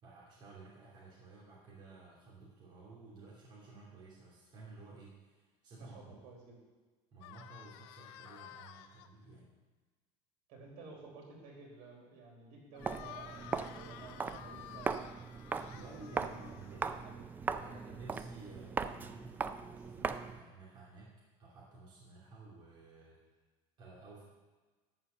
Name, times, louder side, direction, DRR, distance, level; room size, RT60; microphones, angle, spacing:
voice 1, 0.0-6.2 7.1-9.5 15.6-16.9 17.6-21.1 21.4-23.2 23.8-24.2, right 3 dB, 35° right, -6 dB, 2.9 m, -54 dB
voice 2, 5.7-6.5 10.5-15.2 15.8-17.3, right 4 dB, 65° right, -1 dB, 4.2 m, -53 dB
sound 1, 7.2-9.1 12.7-17.1, left 11 dB, 85° left, 0.7 m, -52 dB
Walk footsteps, 12.8-20.4, right 5 dB, 15° right, 0.4 m, -39 dB
12.0 x 5.6 x 7.6 m, 1.3 s
cardioid pair, 165°, 13 cm